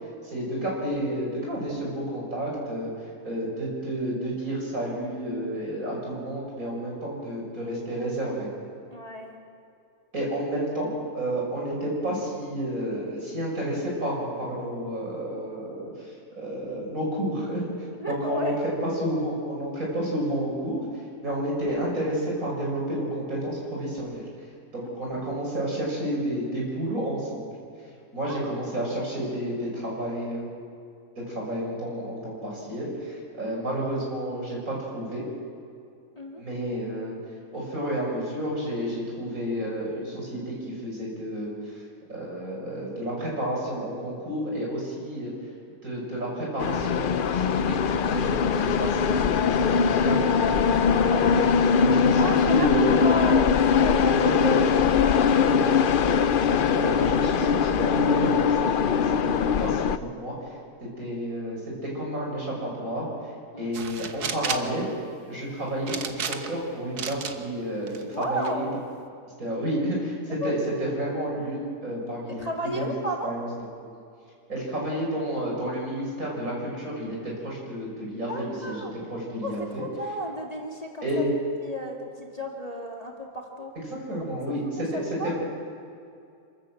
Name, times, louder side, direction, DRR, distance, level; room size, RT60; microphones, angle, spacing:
voice 1, 0.3-2.9 3.2-8.5 10.1-15.9 16.4-17.6 18.1-20.8 21.2-24.2 24.7-27.5 28.1-30.5 31.2-35.2 36.4-37.2 37.5-41.5 42.1-45.3 45.8-51.4 51.8-53.2 54.1-54.7 55.1-55.8 56.5-60.4 60.8-63.1 63.6-64.9 65.3-68.7 69.4-72.9 73.2-73.5 74.5-79.8 81.0-81.3 83.8-85.3, right 1 dB, 60° right, -4 dB, 7.1 m, -30 dB
voice 2, 8.9-9.3 18.0-18.9 21.3-21.4 24.8-25.0 28.3-28.4 36.2-36.4 50.9-54.3 54.8-55.4 56.1-56.4 63.5-63.7 68.1-68.6 70.4-70.5 70.8-71.0 72.3-73.3 78.3-78.9 79.4-81.3 81.6-83.7 84.7-85.3, equal, 25° left, -1 dB, 2.1 m, -34 dB
sound 1, 46.6-60.0, left 6 dB, 60° left, 0.5 m, -21 dB
sound 2, 63.7-64.7 65.9-66.6 67.0-67.4 67.9-68.5, right 6 dB, 85° right, 1.7 m, -32 dB
27.0 x 13.0 x 7.8 m, 2.4 s
omnidirectional pair, 1.6 m